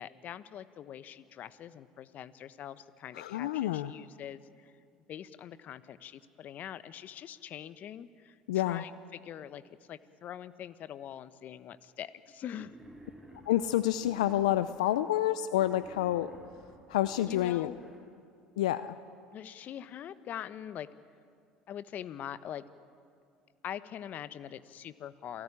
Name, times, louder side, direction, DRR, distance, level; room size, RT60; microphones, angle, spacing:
voice 1, 0.0-4.7 5.1-9.6 9.9-12.7 17.2-17.8 19.3-20.9 21.7-22.6 23.6-25.4, left 10 dB, 50° left, 15 dB, 1.1 m, -43 dB
voice 2, 3.2-3.9 8.5-8.9 13.5-16.3 16.9-17.7 18.6-18.9, left 13 dB, 80° left, 14 dB, 0.6 m, -28 dB
Wild animals, 12.5-15.0 15.5-18.0, right 1 dB, 5° right, 7.9 m, -53 dB
28.0 x 17.5 x 9.9 m, 2.3 s
hypercardioid pair, 75°, 4 cm